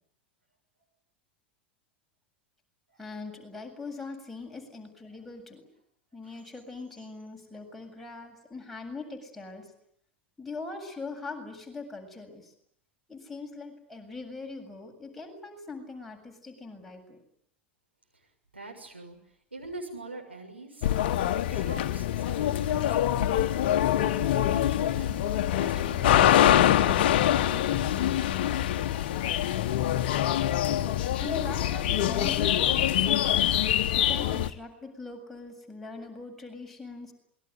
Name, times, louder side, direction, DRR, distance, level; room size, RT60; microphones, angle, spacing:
voice 1, 3.0-5.6 6.1-9.7 10.4-12.5 13.1-17.2 30.8-37.1, left 3 dB, ahead, 0 dB, 7.7 m, -41 dB
voice 2, 18.5-19.2 19.5-20.9 21.3-23.7 24.2-25.2 25.5-28.8, right 2 dB, 85° right, 2 dB, 6.8 m, -44 dB
sound 1, 20.8-34.5, left 11 dB, 55° left, 1.3 m, -24 dB
27.5 x 22.5 x 9.7 m, 0.70 s
figure-of-eight pair, 85°, 6 cm